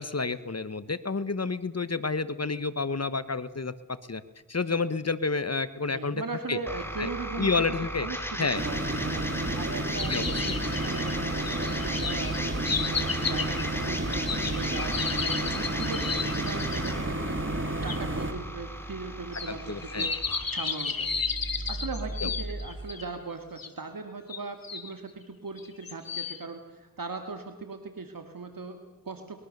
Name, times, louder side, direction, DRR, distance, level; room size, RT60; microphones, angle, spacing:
voice 1, 0.0-4.2 4.5-6.2 6.5-6.6 7.0-7.1 7.4-8.1 8.4-8.6 10.1-10.4 19.5-20.1 22.2-22.4, left 4 dB, 45° left, 14 dB, 1.2 m, -30 dB
voice 2, 5.9-17.4 17.8-20.2 20.5-21.3 21.7-29.4, right 4 dB, 70° right, 6 dB, 2.1 m, -39 dB
sound 1, 6.7-22.7, equal, 5° left, 4.4 m, -36 dB
sound 2, 8.5-18.3, right 2 dB, 35° right, 2.8 m, -31 dB
sound 3, 10.0-17.0 17.9-18.0 19.3-23.0 23.6-23.7 24.3-24.9 25.6-26.4, left 5 dB, 75° left, 2.0 m, -33 dB
22.5 x 22.0 x 6.7 m, 1.2 s
cardioid pair, 40°, 35 cm